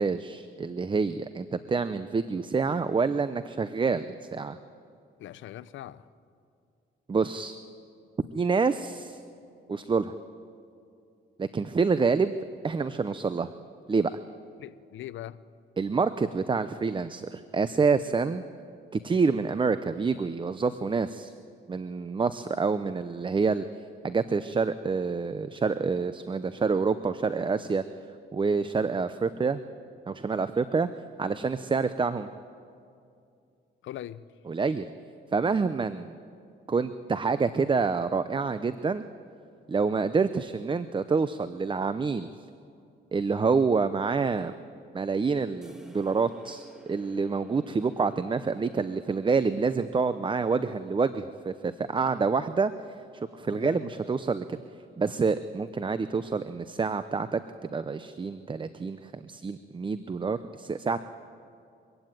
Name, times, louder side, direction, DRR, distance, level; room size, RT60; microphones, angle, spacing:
voice 1, 0.0-4.6 7.1-7.6 8.3-9.2 9.7-10.1 11.4-12.3 12.6-13.5 13.9-14.1 15.8-18.4 18.9-21.3 21.7-23.6 24.0-27.8 28.3-29.6 30.1-30.9 31.2-32.3 34.5-34.9 35.3-36.1 36.7-39.0 39.7-42.3 43.1-44.6 44.9-52.7 53.1-54.6 55.0-61.0, right 4 dB, 25° right, 12 dB, 0.6 m, -27 dB
voice 2, 5.2-6.1 14.6-15.4 33.8-34.3 53.5-53.9, left 13 dB, 75° left, 15 dB, 0.7 m, -41 dB
sound 1, 45.6-53.1, equal, 5° right, 2.4 m, -54 dB
23.5 x 16.0 x 9.1 m, 2.5 s
cardioid pair, 90°, 20 cm